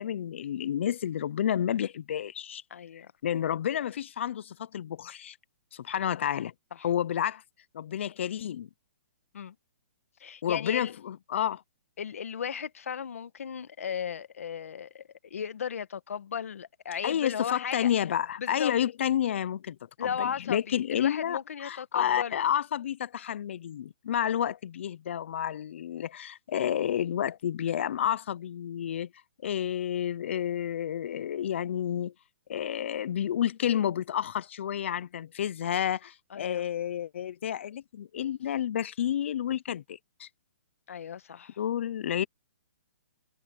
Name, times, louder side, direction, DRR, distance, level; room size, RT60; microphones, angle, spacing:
voice 1, 0.0-2.6 3.2-5.4 5.7-6.5 6.8-7.4 7.7-8.7 10.4-11.6 17.0-29.1 29.4-32.1 32.5-40.3 41.6-42.3, left 10 dB, 55° left, 0.6 m, -30 dB
voice 2, 2.7-3.1 6.8-6.9 9.3-9.5 10.2-10.9 12.0-17.9 18.4-18.7 20.0-22.3 36.3-36.6 40.9-41.6, left 7 dB, 75° left, 1.6 m, -36 dB
hypercardioid pair, 160°, 8 cm